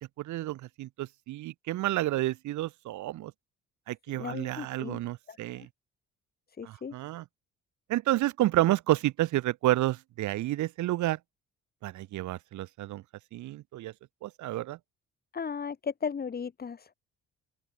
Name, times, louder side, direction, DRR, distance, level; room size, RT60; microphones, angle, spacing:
voice 1, 0.2-3.3 3.9-5.7 6.6-7.2 7.9-11.2 11.8-13.0 13.3-13.9 14.2-14.8, right 15 dB, 75° right, 0.7 m, -30 dB
voice 2, 4.2-5.0 5.3-5.7 6.6-6.9 15.3-16.9, left 6 dB, 30° left, 1.1 m, -36 dB
open air
cardioid pair, 90°, 30 cm